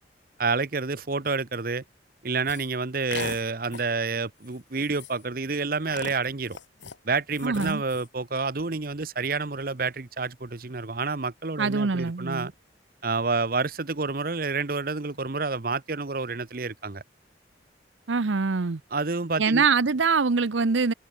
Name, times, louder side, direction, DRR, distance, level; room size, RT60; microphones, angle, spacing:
voice 1, 0.4-1.8 2.2-6.6 7.0-12.5 13.0-17.0 18.9-19.7, right 4 dB, 50° right, 1.0 m, -29 dB
sound 1, 2.5-2.7 3.1-3.4 3.7-3.9 4.4-4.6 4.8-5.3 5.9-7.0 7.3-8.1, left 5 dB, 80° left, 2.1 m, -38 dB
voice 2, 7.4-7.8 11.6-12.5 18.1-18.8 19.4-20.9, right 4 dB, 90° right, 0.8 m, -24 dB
head